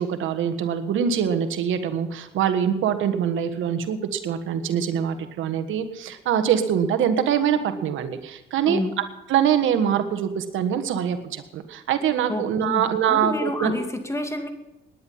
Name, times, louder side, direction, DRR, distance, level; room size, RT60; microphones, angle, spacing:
voice 1, 0.0-8.8 9.3-13.8, right 8 dB, 80° right, 9 dB, 1.4 m, -24 dB
voice 2, 12.3-12.8 13.1-14.5, left 1 dB, 15° left, 6 dB, 2.3 m, -28 dB
18.5 x 10.5 x 5.6 m, 1.0 s
cardioid pair, 90°, 20 cm